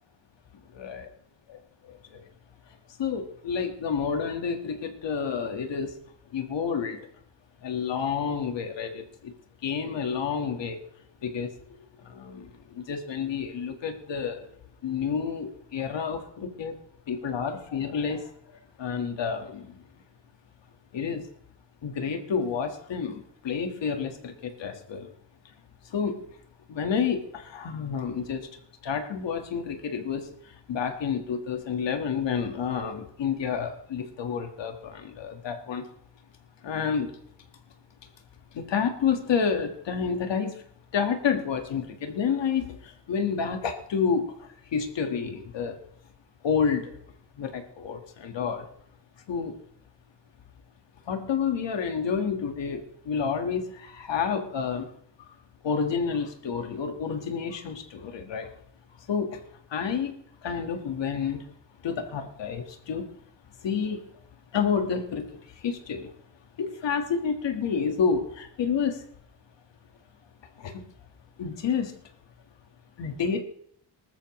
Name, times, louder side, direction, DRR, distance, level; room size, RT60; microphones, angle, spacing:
voice 1, 0.7-1.1 1.5-2.2 3.0-5.9 6.3-7.0 7.6-9.3 9.6-10.8 11.2-11.5 12.0-14.5 14.8-16.8 17.1-18.3 18.8-19.8 20.9-21.3 21.8-25.1 25.9-26.2 26.7-28.5 28.8-35.9 36.6-37.1 38.5-40.5 40.9-45.8 46.4-46.9 47.4-48.7 49.3-49.6 51.1-54.9 55.6-58.5 59.1-59.4 59.7-61.5 61.8-63.1 63.6-64.0 64.5-65.3 65.6-66.1 66.6-69.0 70.6-70.8 71.4-72.0 73.0-73.4, left 6 dB, 85° left, 5 dB, 1.8 m, -29 dB
19.0 x 13.5 x 3.2 m, 0.65 s
cardioid pair, 85°, 42 cm